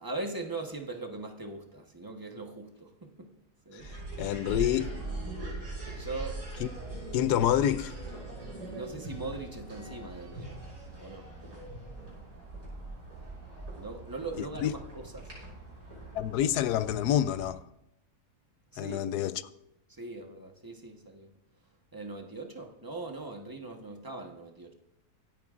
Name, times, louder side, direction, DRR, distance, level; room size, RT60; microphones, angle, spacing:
voice 1, 0.0-3.3 3.7-3.9 5.9-6.4 8.7-10.5 11.0-11.3 13.8-15.3 18.7-19.3 20.0-21.3 21.9-24.7, right 3 dB, 15° right, 1.0 m, -40 dB
sound 1, 3.8-17.5, right 2 dB, 75° right, 6.4 m, -41 dB
voice 2, 4.2-5.0 6.6-6.7 7.1-7.9 14.4-14.7 16.1-17.6 18.8-19.5, left 11 dB, 75° left, 1.1 m, -28 dB
25.0 x 8.8 x 2.5 m
omnidirectional pair, 1.8 m